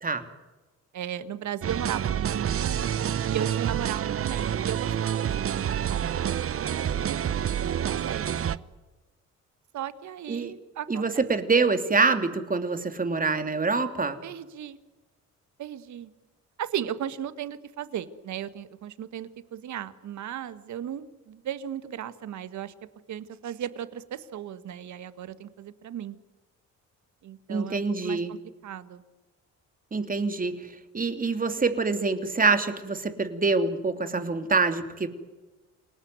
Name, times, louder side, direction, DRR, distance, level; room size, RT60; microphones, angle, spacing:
voice 1, 0.9-3.0 3.3-7.3 7.7-8.7 9.7-11.3 14.2-14.8 15.6-16.1 16.6-22.7 23.1-26.2 27.2-28.4 28.6-29.0, right 10 dB, 70° right, 13 dB, 1.8 m, -36 dB
sound 1, 1.6-8.6, right 9 dB, 50° right, 1.0 m, -28 dB
voice 2, 10.9-14.2 27.5-28.3 29.9-30.6 30.9-35.1, right 4 dB, 30° right, 8 dB, 3.0 m, -25 dB
28.5 x 18.5 x 9.6 m, 1.2 s
cardioid pair, 90°, 30 cm